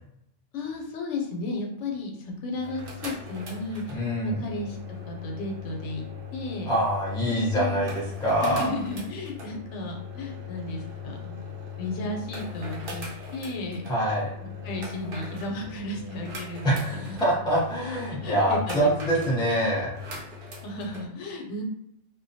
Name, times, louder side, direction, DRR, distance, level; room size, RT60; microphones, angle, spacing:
voice 1, 0.5-4.8 5.1-6.1 6.3-6.7 7.3-7.8 8.4-13.8 14.4-17.2 18.2-19.3 20.6-21.6, left 2 dB, 80° left, 1 dB, 0.9 m, -34 dB
sound 1, 2.5-21.0, left 5 dB, 55° right, 0.8 m, -39 dB
voice 2, 3.9-4.4 6.7-8.7 13.9-14.3 16.6-19.9, right 1 dB, 5° left, -6 dB, 0.6 m, -25 dB
2.3 x 2.1 x 2.6 m, 0.76 s
omnidirectional pair, 1.2 m